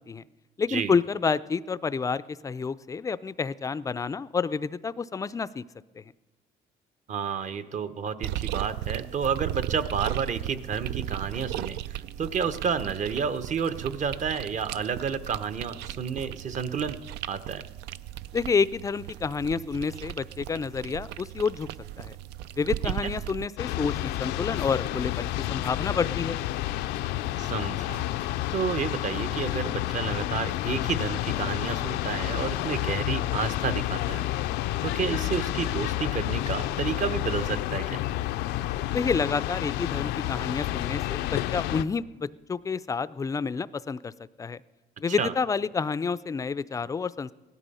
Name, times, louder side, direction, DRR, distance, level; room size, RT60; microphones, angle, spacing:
voice 1, 0.6-5.6 6.0-6.1 18.3-21.7 22.0-22.2 22.6-26.4 38.9-44.1 44.4-44.6 45.0-47.3, left 5 dB, 20° left, 17 dB, 0.4 m, -29 dB
voice 2, 7.1-17.0 17.3-17.6 22.8-23.1 27.4-28.1 28.5-34.3 34.8-38.0 45.1-45.3, right 6 dB, 45° right, 12 dB, 0.9 m, -30 dB
sound 1, 8.2-23.5, right 13 dB, 85° right, 0.4 m, -36 dB
sound 2, 23.6-41.8, left 14 dB, 90° left, 0.5 m, -30 dB
17.0 x 12.0 x 5.5 m, 1.2 s
cardioid pair, 110°, 17 cm